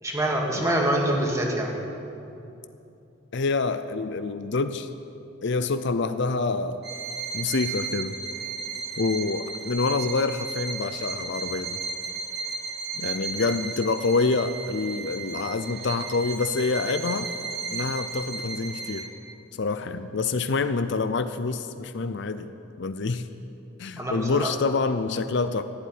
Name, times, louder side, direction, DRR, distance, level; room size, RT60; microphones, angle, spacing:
voice 1, 0.0-1.8 24.0-24.5, right 1 dB, 15° right, -1 dB, 2.0 m, -25 dB
voice 2, 3.3-4.9 5.4-6.8 7.3-8.2 9.0-11.8 12.9-17.3 17.7-19.1 19.6-22.5 22.8-23.2 23.8-25.6, left 4 dB, 55° left, 10 dB, 0.5 m, -27 dB
Bowed string instrument, 6.8-19.3, right 5 dB, 50° right, 1.2 m, -34 dB
14.5 x 8.4 x 9.6 m, 2.8 s
head